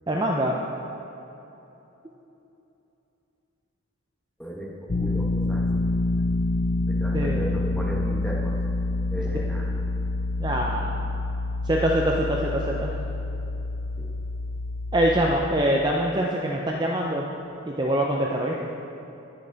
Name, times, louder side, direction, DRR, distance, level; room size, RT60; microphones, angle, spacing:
voice 1, 0.1-0.6 7.1-7.4 10.4-11.0 11.6-12.9 14.9-17.3 17.7-18.5, right 1 dB, 20° right, -1 dB, 0.5 m, -24 dB
voice 2, 4.4-4.7 5.0-5.8 6.9-8.5 9.1-9.7 14.0-14.1, equal, 5° left, -3 dB, 1.1 m, -35 dB
sound 1, 4.9-15.4, left 2 dB, 35° left, 0.4 m, -27 dB
10.5 x 6.9 x 3.9 m, 2.9 s
head